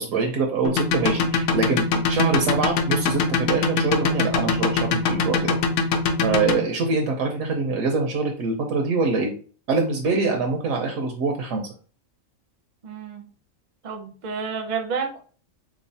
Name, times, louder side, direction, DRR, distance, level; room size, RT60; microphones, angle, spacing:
voice 1, 0.0-5.6 6.2-9.3 9.7-11.7, right 4 dB, 80° right, 2 dB, 1.0 m, -24 dB
sound 1, 0.7-6.6, left 4 dB, 70° left, 0.8 m, -22 dB
voice 2, 6.4-6.7 12.8-13.3 13.8-15.2, right 5 dB, 50° right, 5 dB, 0.5 m, -30 dB
3.7 x 3.0 x 2.7 m, 0.40 s
omnidirectional pair, 1.4 m